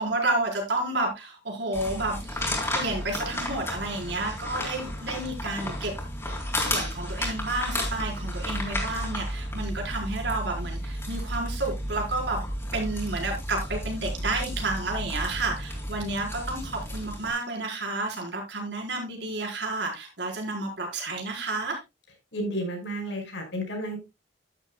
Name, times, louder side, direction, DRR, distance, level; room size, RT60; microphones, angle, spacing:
voice 1, 0.0-2.4 2.7-5.9 6.6-12.4 12.7-21.8, right 2 dB, 65° right, 0 dB, 4.6 m, -30 dB
sound 1, 1.7-17.3, left 1 dB, 15° left, 3.8 m, -33 dB
voice 2, 22.3-24.0, equal, 80° left, 2 dB, 5.4 m, -32 dB
11.5 x 11.0 x 2.3 m, 0.23 s
head